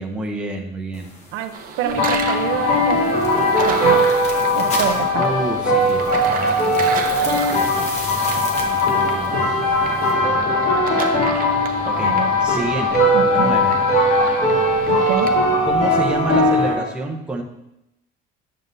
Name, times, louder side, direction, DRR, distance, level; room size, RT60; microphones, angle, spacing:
voice 1, 0.0-1.1 5.2-7.9 8.6-10.8 11.9-12.1 12.4-13.8 15.6-17.4, right 2 dB, 5° right, -1 dB, 0.7 m, -29 dB
sound 1, 0.9-10.1, left 2 dB, 35° left, 1.0 m, -36 dB
sound 2, 1.5-15.3, right 7 dB, 45° right, 0.6 m, -32 dB
sound 3, 1.8-16.7, left 1 dB, 50° left, 2.5 m, -19 dB
voice 2, 1.8-3.2 3.6-4.1 4.6-5.3 12.0-12.3 13.1-13.6 14.9-15.3, right 9 dB, 90° right, 7 dB, 0.6 m, -26 dB
9.3 x 6.5 x 2.6 m, 0.85 s
cardioid pair, 175°, 20 cm